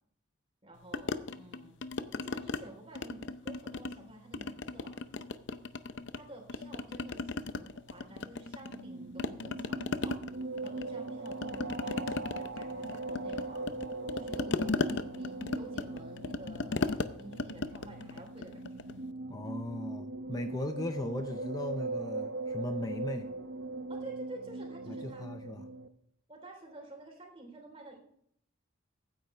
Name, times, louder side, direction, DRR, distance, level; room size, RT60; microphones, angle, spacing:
voice 1, 0.6-4.9 6.1-10.2 10.6-13.7 14.1-18.8 24.0-25.3 26.3-28.0, right 1 dB, 30° right, 1 dB, 3.6 m, -50 dB
sound 1, 0.9-2.6 2.9-4.0 4.3-6.2 6.5-8.9 9.2-19.0, left 3 dB, 65° left, 0.6 m, -36 dB
sound 2, 8.6-25.9, right 2 dB, 65° right, 0.9 m, -40 dB
voice 2, 19.3-23.3 24.9-25.6, left 1 dB, 20° left, 8 dB, 0.4 m, -38 dB
15.5 x 9.6 x 3.3 m, 0.67 s
head